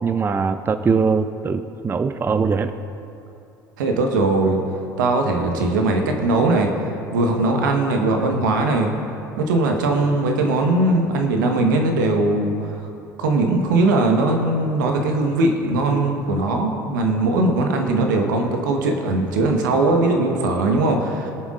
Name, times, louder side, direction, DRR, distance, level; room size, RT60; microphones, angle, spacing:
voice 1, 0.0-2.7, right 5 dB, 20° right, 10 dB, 0.4 m, -21 dB
voice 2, 3.8-4.6 5.0-8.9 9.4-12.8 13.2-21.3, right 2 dB, 75° right, 3 dB, 1.2 m, -20 dB
21.5 x 7.2 x 2.5 m, 2.7 s
hypercardioid pair, 65°, 10 cm